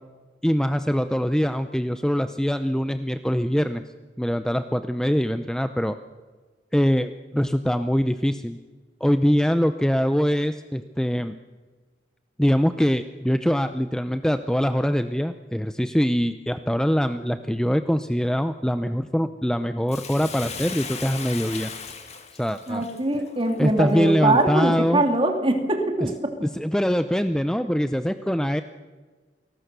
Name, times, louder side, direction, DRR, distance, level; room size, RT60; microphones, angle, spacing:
voice 1, 0.4-3.8 4.2-6.0 6.7-8.6 9.0-11.4 12.4-21.7 22.4-22.8 23.6-25.0 26.5-28.6, equal, 5° left, 10 dB, 0.6 m, -23 dB
Bathtub (filling or washing), 19.9-24.4 25.0-25.1, left 5 dB, 40° left, 2.3 m, -37 dB
voice 2, 22.7-26.4, right 2 dB, 30° right, 4 dB, 2.8 m, -22 dB
28.0 x 19.0 x 6.8 m, 1.4 s
head